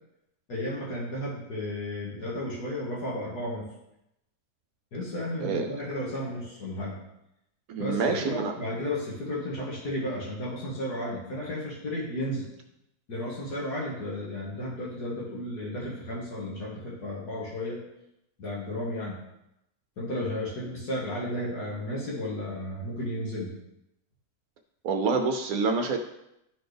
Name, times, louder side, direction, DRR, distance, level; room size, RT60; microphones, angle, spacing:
voice 1, 0.5-3.6 4.9-7.0 7.8-12.5 13.1-17.8 18.4-19.2 20.0-23.5, left 1 dB, 85° left, -5 dB, 2.3 m, -33 dB
voice 2, 7.7-8.5 24.8-26.0, right 4 dB, 70° right, 4 dB, 1.0 m, -27 dB
12.0 x 4.1 x 3.4 m, 0.85 s
omnidirectional pair, 1.6 m